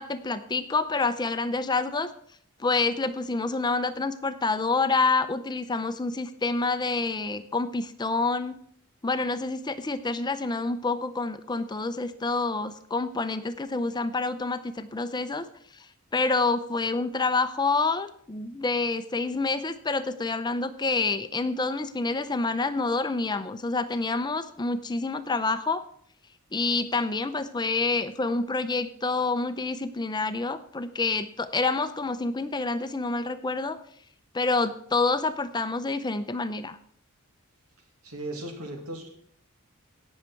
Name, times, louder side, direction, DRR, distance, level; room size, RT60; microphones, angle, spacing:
voice 1, 0.0-2.1 2.6-8.5 9.0-15.5 16.1-25.8 26.5-33.8 34.3-36.8, left 3 dB, 20° left, 11 dB, 0.5 m, -27 dB
voice 2, 38.0-39.1, right 1 dB, 80° right, 3 dB, 2.3 m, -36 dB
17.5 x 6.5 x 4.5 m, 0.63 s
head